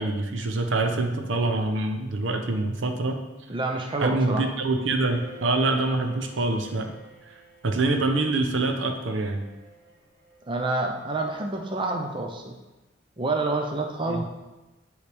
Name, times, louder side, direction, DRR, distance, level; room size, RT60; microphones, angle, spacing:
voice 1, 0.0-3.2 4.0-6.9 7.3-7.4 7.6-9.4 14.1-14.2, right 2 dB, 70° right, 4 dB, 0.7 m, -25 dB
voice 2, 3.5-4.4 10.5-12.5 13.2-14.2, right 2 dB, 25° right, 2 dB, 0.5 m, -28 dB
Bowed string instrument, 4.7-10.7, equal, 50° right, 1.5 m, -49 dB
9.4 x 3.2 x 3.4 m, 1.1 s
head